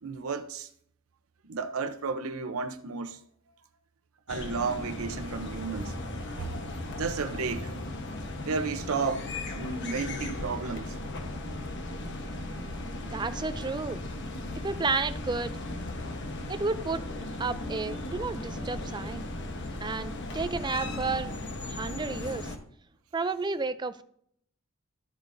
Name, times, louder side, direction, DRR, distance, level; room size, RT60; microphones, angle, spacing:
voice 1, 0.0-0.7 1.4-3.2 4.3-5.9 6.3-6.5 6.9-7.7 8.4-9.3 9.6-11.0, right 4 dB, 90° right, 0.7 m, -32 dB
sound 1, 4.3-22.6, left 2 dB, 60° left, 1.2 m, -37 dB
voice 2, 13.0-14.0 14.6-15.5 16.5-17.0 17.4-19.3 19.8-21.3 21.7-22.5 23.1-24.0, right 4 dB, 20° right, 0.4 m, -31 dB
13.0 x 8.3 x 2.7 m
head